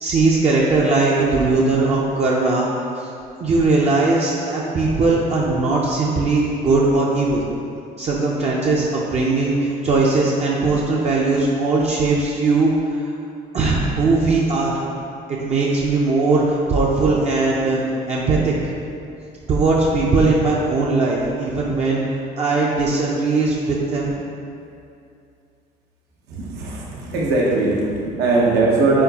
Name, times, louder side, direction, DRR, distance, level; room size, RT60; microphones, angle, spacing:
voice 1, 0.0-2.7 3.0-3.1 3.4-7.5 8.0-12.7 13.0-13.1 13.5-14.8 15.3-17.8 18.1-18.5 19.5-22.0 22.4-24.1, right 3 dB, 40° right, -4 dB, 0.5 m, -19 dB
voice 2, 26.3-29.0, right 3 dB, 85° right, -2 dB, 0.8 m, -19 dB
4.3 x 3.9 x 2.8 m, 2.5 s
cardioid pair, 110°, 17 cm